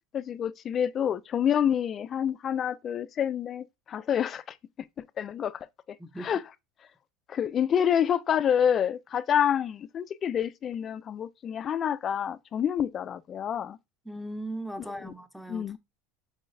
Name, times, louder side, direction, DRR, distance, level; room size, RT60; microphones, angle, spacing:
voice 1, 0.1-4.4 5.2-5.6 6.2-6.4 7.3-13.8 15.0-15.1 15.5-15.8, left 9 dB, 35° left, 0.3 m, -27 dB
voice 2, 14.1-15.8, right 1 dB, ahead, 0.7 m, -38 dB
4.9 x 3.8 x 2.6 m
supercardioid pair, 115°, 0 cm